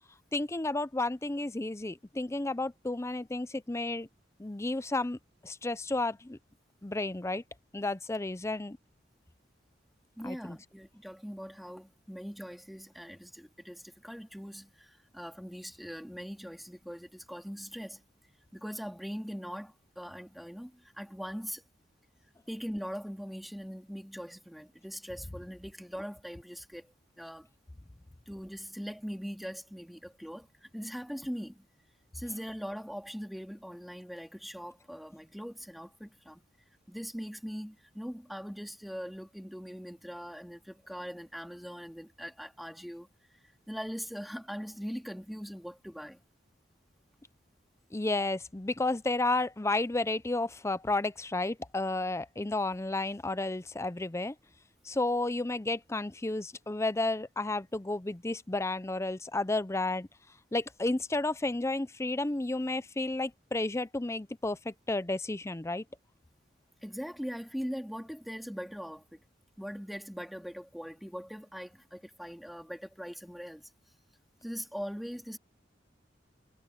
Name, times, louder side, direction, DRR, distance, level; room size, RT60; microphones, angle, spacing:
voice 1, 0.3-4.1 4.4-5.2 5.4-6.4 6.8-7.4 7.7-8.8 10.2-10.6 47.9-54.3 54.9-60.1 60.5-65.8, left 2 dB, 15° left, 0.6 m, -32 dB
voice 2, 10.2-18.0 18.5-21.6 22.5-27.5 28.3-31.6 32.1-36.4 36.9-43.1 43.7-46.2 66.8-69.2 69.6-73.7 74.4-75.4, equal, ahead, 2.6 m, -41 dB
head